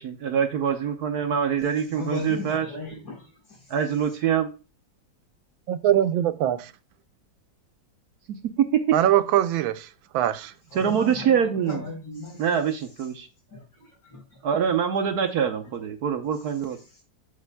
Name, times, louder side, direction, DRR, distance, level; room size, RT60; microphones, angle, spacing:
voice 1, 0.0-2.7 3.7-4.5 8.6-8.8 10.7-11.8 12.4-13.3 14.4-16.8, right 8 dB, 60° right, 1.2 m, -24 dB
voice 2, 1.9-3.6 10.7-12.5 13.5-14.4, left 2 dB, 70° left, 4.9 m, -36 dB
voice 3, 5.7-6.7 8.9-9.9 10.1-10.5, right 11 dB, 85° right, 1.4 m, -22 dB
8.4 x 7.4 x 2.2 m
omnidirectional pair, 2.1 m